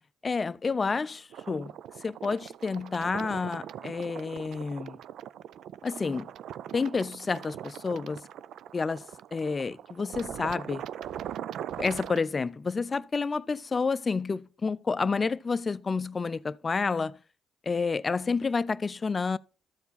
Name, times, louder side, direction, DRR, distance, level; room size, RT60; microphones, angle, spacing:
voice 1, 0.2-1.7 2.0-5.0 5.8-6.3 6.7-8.2 8.7-10.8 11.8-17.2 17.7-19.4, left 4 dB, 30° left, 0.4 m, -29 dB
sound 1, 1.3-12.2, right 10 dB, 75° right, 0.3 m, -41 dB
13.5 x 4.6 x 4.0 m
cardioid pair, 90°, 0 cm